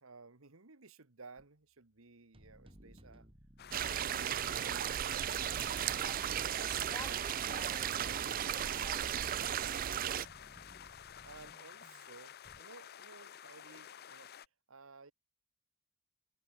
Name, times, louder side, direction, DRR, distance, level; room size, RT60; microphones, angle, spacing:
voice 1, 0.0-3.3 3.8-4.8 9.5-9.8 10.9-14.3 14.7-15.1, right 4 dB, 80° right, 1.6 m, -57 dB
sound 1, 1.4-1.5 2.3-12.6, equal, 25° right, 5.6 m, -60 dB
sound 2, 3.6-14.5, left 9 dB, 50° left, 0.6 m, -52 dB
sound 3, 3.7-10.3, right 10 dB, 40° right, 0.3 m, -35 dB
voice 2, 6.0-6.3 6.7-9.9, left 3 dB, 20° left, 1.5 m, -54 dB
head